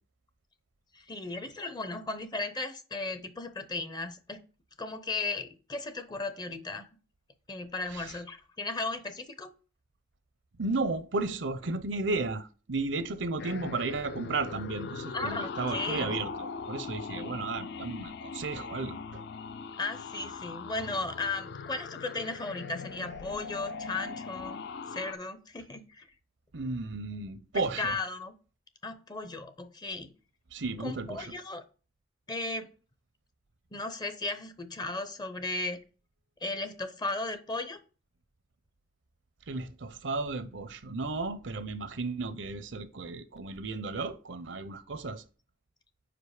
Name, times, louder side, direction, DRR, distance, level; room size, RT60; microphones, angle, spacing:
voice 1, 0.9-4.4 4.8-6.9 7.5-9.5 15.1-16.1 19.8-24.6 24.9-26.0 27.5-28.3 28.8-30.1 30.8-31.6 32.3-32.7 33.7-35.8 36.4-37.8, left 3 dB, 25° left, 0.6 m, -36 dB
voice 2, 10.6-19.2 26.5-28.0 30.5-31.3 39.5-45.2, right 3 dB, 70° right, 0.6 m, -34 dB
sound 1, 13.4-25.1, left 5 dB, 65° left, 0.4 m, -40 dB
5.1 x 4.9 x 4.9 m
head